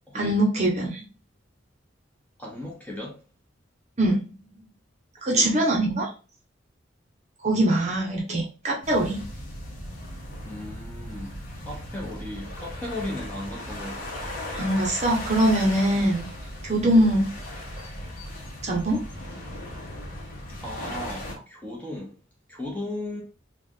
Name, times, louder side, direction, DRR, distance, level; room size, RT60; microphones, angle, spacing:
voice 1, 0.1-1.0 4.0-4.2 5.2-6.1 7.4-9.2 14.5-16.3 16.6-17.3 18.6-19.0, right 1 dB, 35° right, 0.9 m, -22 dB
voice 2, 2.4-3.1 5.3-5.8 10.5-14.1 20.6-22.1 22.5-23.2, left 1 dB, 10° left, 1.0 m, -36 dB
sound 1, 8.8-21.4, left 1 dB, 45° left, 1.1 m, -37 dB
3.5 x 2.4 x 3.7 m
head